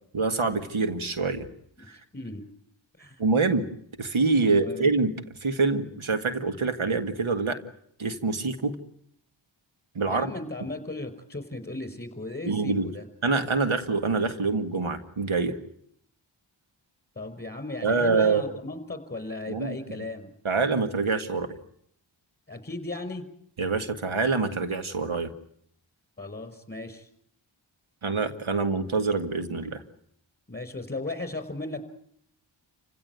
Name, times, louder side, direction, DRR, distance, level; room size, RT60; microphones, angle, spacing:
voice 1, 0.1-1.5 1.9-2.0 3.2-3.7 4.0-5.1 5.4-7.6 8.0-8.8 10.0-10.3 12.5-12.9 13.2-15.6 17.8-18.5 19.5-19.8 20.4-21.6 23.6-25.3 28.0-29.8, right 4 dB, 90° right, 8 dB, 1.9 m, -25 dB
voice 2, 2.1-2.5 3.0-3.2 4.5-4.9 10.1-13.1 17.2-20.3 22.5-23.3 26.2-27.1 30.5-31.8, left 2 dB, 20° left, 8 dB, 5.5 m, -36 dB
29.5 x 16.5 x 9.3 m, 0.68 s
wide cardioid pair, 70°, 47 cm